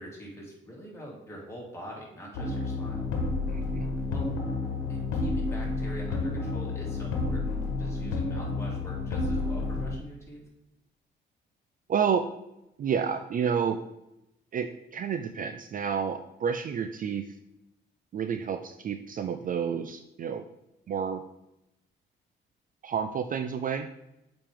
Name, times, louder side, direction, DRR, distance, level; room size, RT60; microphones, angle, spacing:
voice 1, 0.0-3.1 4.1-4.3 4.9-10.4, equal, 15° left, -4 dB, 2.8 m, -44 dB
sound 1, 2.3-9.9, left 3 dB, 85° left, 1.3 m, -30 dB
voice 2, 3.5-3.9 11.9-12.3 12.8-13.8 14.5-17.4 18.1-20.4 20.9-21.2 22.8-23.9, right 7 dB, 45° right, 9 dB, 0.4 m, -30 dB
7.3 x 5.1 x 3.7 m, 0.87 s
cardioid pair, 90°, 20 cm